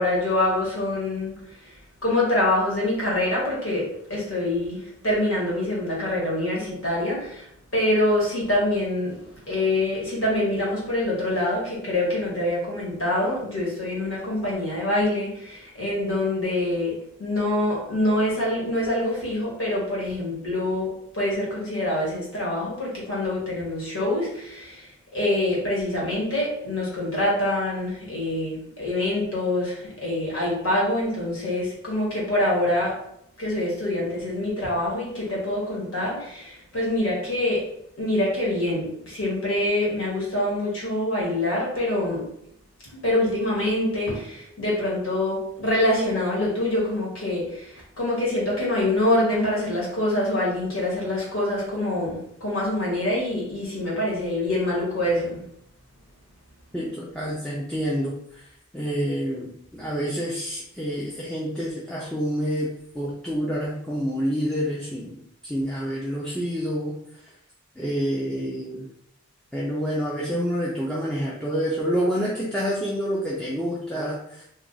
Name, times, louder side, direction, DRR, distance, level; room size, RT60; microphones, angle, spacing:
voice 1, 0.0-1.8 2.0-33.0 33.4-37.6 38.0-42.3 42.9-55.4, left 1 dB, 75° left, -4 dB, 1.5 m, -25 dB
voice 2, 56.7-58.5 58.7-67.0 67.2-67.3 67.8-68.9 69.5-74.4, equal, 5° left, -5 dB, 0.4 m, -28 dB
3.0 x 2.4 x 3.8 m, 0.74 s
head